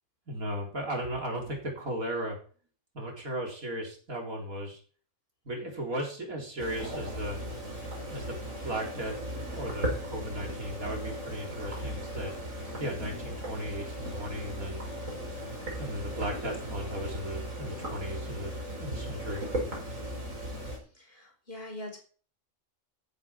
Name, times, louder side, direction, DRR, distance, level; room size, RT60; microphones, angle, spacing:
voice 1, 0.3-2.4 2.9-4.8 5.5-7.4 8.1-8.4 8.6-12.3 12.8-14.8 15.8-19.5, equal, 90° right, 0 dB, 4.4 m, -36 dB
sound 1, 6.6-20.8, equal, 70° right, 6.1 m, -37 dB
voice 2, 20.7-22.0, left 1 dB, 40° left, 3 dB, 4.8 m, -43 dB
14.0 x 11.5 x 4.6 m, 0.41 s
omnidirectional pair, 1.4 m